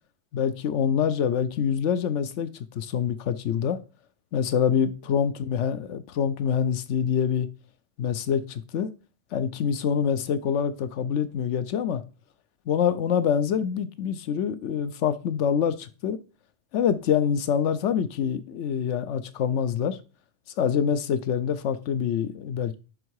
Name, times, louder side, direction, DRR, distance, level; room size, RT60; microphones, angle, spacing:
voice 1, 0.3-3.8 4.3-7.5 8.0-8.9 9.3-12.0 12.7-16.2 16.7-20.0 20.6-22.7, left 8 dB, 85° left, 1.0 m, -25 dB
10.0 x 3.6 x 4.7 m
omnidirectional pair, 1.2 m